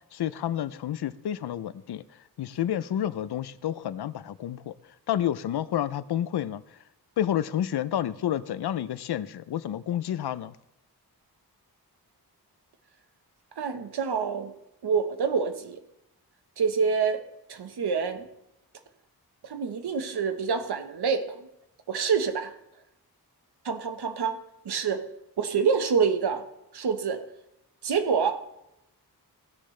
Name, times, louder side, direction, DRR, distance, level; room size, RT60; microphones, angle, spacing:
voice 1, 0.1-2.0 2.4-4.7 5.1-6.6 7.2-10.6, left 11 dB, 85° left, 0.6 m, -29 dB
voice 2, 13.6-14.5 14.8-15.8 16.6-17.2 17.5-18.3 19.4-21.2 21.9-22.5 23.6-24.4 24.6-25.0 25.4-26.4 26.7-27.2 27.8-28.4, right 6 dB, 85° right, 1.2 m, -26 dB
16.5 x 10.0 x 3.3 m
wide cardioid pair, 155°, 39 cm